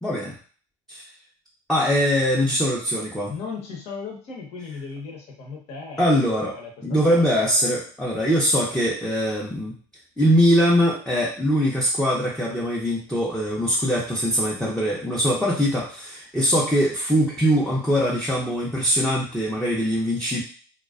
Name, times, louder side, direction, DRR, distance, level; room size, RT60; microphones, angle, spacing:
voice 1, 0.0-0.4 0.9-1.0 1.7-3.3 6.0-6.6 6.8-9.8 10.2-20.4, equal, 5° left, -4 dB, 0.5 m, -22 dB
voice 2, 3.3-6.2 6.5-6.7 7.1-7.2, left 5 dB, 60° left, 0 dB, 0.9 m, -36 dB
2.4 x 2.2 x 2.4 m, 0.41 s
supercardioid pair, 100°, 13 cm